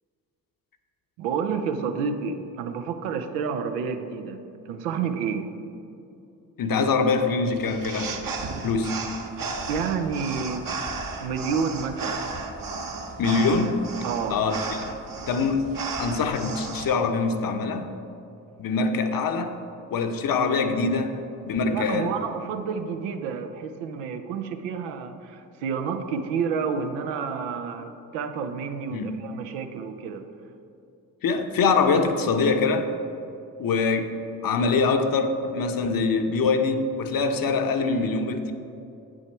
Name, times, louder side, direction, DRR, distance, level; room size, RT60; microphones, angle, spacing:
voice 1, 1.2-5.5 9.7-10.8 11.2-12.4 14.0-14.4 21.7-30.3, right 6 dB, 85° right, 7 dB, 0.6 m, -30 dB
voice 2, 6.6-8.1 8.6-9.0 13.2-13.8 14.3-14.6 15.3-17.9 18.6-19.6 19.9-22.1 28.9-29.2 31.2-33.0 33.6-34.2 34.4-38.5, left 4 dB, 50° left, 7 dB, 0.8 m, -24 dB
sound 1, 7.6-16.8, right 4 dB, 50° right, 1.0 m, -34 dB
8.3 x 6.3 x 4.4 m, 2.7 s
hypercardioid pair, 40°, 43 cm